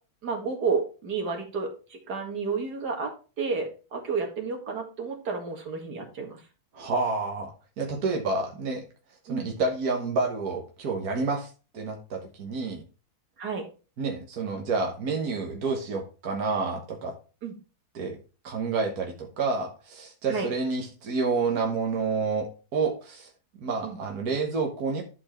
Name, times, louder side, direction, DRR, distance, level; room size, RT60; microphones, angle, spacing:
voice 1, 0.2-6.4 9.3-9.5 13.4-13.6 17.4-17.5 20.3-20.5 23.8-24.0, right 5 dB, 90° right, 2 dB, 2.5 m, -31 dB
voice 2, 6.7-8.8 9.3-12.8 14.0-17.1 18.0-18.2 18.4-23.3 23.6-25.0, right 4 dB, 70° right, 1 dB, 1.8 m, -29 dB
11.0 x 4.8 x 4.4 m, 0.34 s
omnidirectional pair, 1.7 m